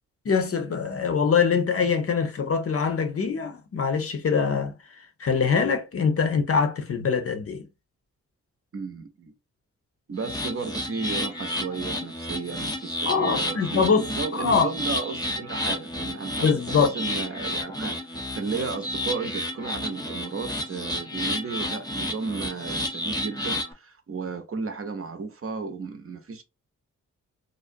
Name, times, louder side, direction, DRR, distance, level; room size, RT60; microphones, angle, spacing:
voice 1, 0.3-4.7 5.2-7.6 13.0-14.1 14.4-14.7 16.4-16.9, left 5 dB, 45° left, 0.6 m, -23 dB
voice 2, 8.7-9.3 10.1-18.0 18.3-26.4, right 4 dB, 45° right, 0.7 m, -34 dB
sound 1, 10.2-23.7, left 1 dB, 10° left, 0.7 m, -31 dB
2.5 x 2.1 x 2.6 m
supercardioid pair, 45°, 33 cm